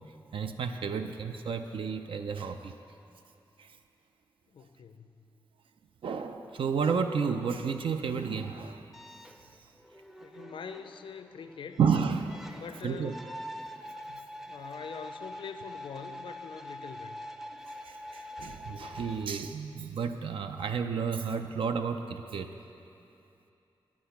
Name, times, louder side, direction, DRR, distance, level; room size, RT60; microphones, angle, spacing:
voice 1, 0.3-2.7 3.6-3.7 6.0-8.8 11.8-12.4 12.8-13.1 14.1-14.2 17.8-22.5, right 6 dB, 90° right, 7 dB, 0.5 m, -31 dB
voice 2, 4.5-5.1 10.2-11.8 12.5-13.3 14.5-17.3, left 6 dB, 75° left, 9 dB, 0.5 m, -44 dB
sound 1, 8.9-19.3, left 1 dB, 5° right, 0.4 m, -45 dB
10.0 x 8.5 x 5.8 m, 2.7 s
wide cardioid pair, 145°, 9 cm